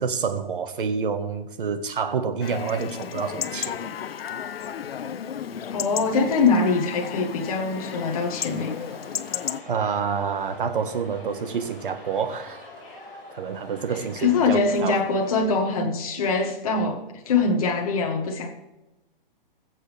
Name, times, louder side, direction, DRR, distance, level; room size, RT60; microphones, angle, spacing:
voice 1, 0.0-3.9 9.7-12.7 13.3-15.0, right 6 dB, 65° right, 1.5 m, -28 dB
Chatter / Livestock farm animals working animals / Chirp tweet, 2.4-9.6, left 8 dB, 90° left, 0.8 m, -33 dB
voice 2, 5.7-8.7 14.2-18.6, left 4 dB, 40° left, 1.5 m, -23 dB
sound 1, 7.6-15.6, left 2 dB, 20° left, 5.3 m, -44 dB
22.0 x 7.5 x 3.5 m
hypercardioid pair, 180°, 29 cm